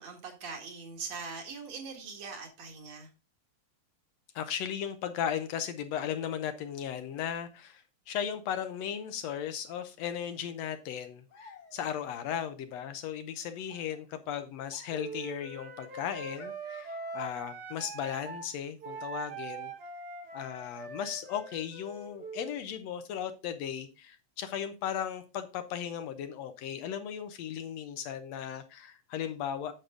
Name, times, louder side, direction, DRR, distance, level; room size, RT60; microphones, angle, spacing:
voice 1, 0.0-3.1, right 5 dB, 65° right, 2 dB, 3.0 m, -42 dB
voice 2, 4.4-19.7 20.3-29.7, left 9 dB, 75° left, 9 dB, 1.7 m, -36 dB
sound 1, 11.3-12.1 13.3-15.3 16.3-17.4, left 4 dB, 40° left, 1.6 m, -57 dB
Wind instrument woodwind instrument, 14.9-18.5 18.8-22.6, right 3 dB, 80° right, 3.5 m, -42 dB
8.8 x 6.5 x 3.7 m, 0.31 s
omnidirectional pair, 3.3 m